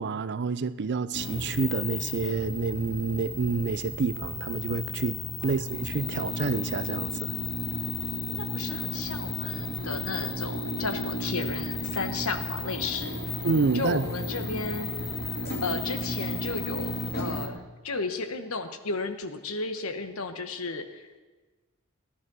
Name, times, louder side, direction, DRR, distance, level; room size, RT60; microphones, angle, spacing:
voice 1, 0.0-7.3 13.4-14.0, right 4 dB, 55° right, 0.5 m, -28 dB
sound 1, 1.1-17.5, left 2 dB, 45° left, 2.7 m, -33 dB
voice 2, 5.4-5.8 8.3-13.2 13.7-14.9 15.6-21.2, left 3 dB, 70° left, 1.2 m, -34 dB
16.5 x 11.5 x 6.2 m
head